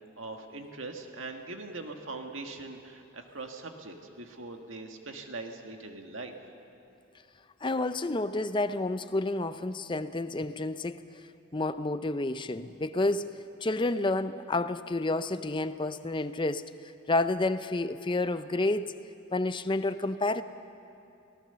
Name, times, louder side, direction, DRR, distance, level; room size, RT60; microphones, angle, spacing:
voice 1, 0.2-6.4, right 3 dB, 65° right, 4 dB, 1.8 m, -41 dB
voice 2, 7.6-11.0 11.5-13.3 13.6-16.6 17.1-18.9 19.3-20.4, left 2 dB, 25° left, 12 dB, 0.5 m, -29 dB
24.5 x 18.0 x 6.9 m, 2.7 s
head